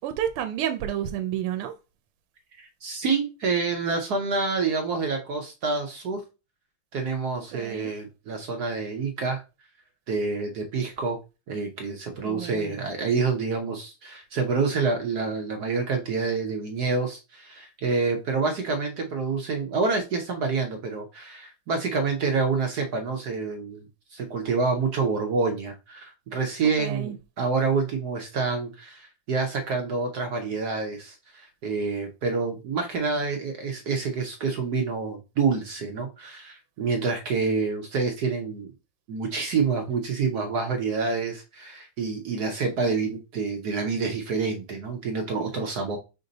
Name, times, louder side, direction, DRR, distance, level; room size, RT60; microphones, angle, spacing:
voice 1, 0.0-1.7 7.5-7.9 12.2-12.7 26.8-27.1, right 10 dB, 90° right, 1.5 m, -30 dB
voice 2, 2.6-6.2 6.9-9.4 10.1-11.2 11.5-38.7 39.1-46.0, right 4 dB, 65° right, 1.0 m, -27 dB
5.2 x 2.6 x 3.8 m
omnidirectional pair, 2.4 m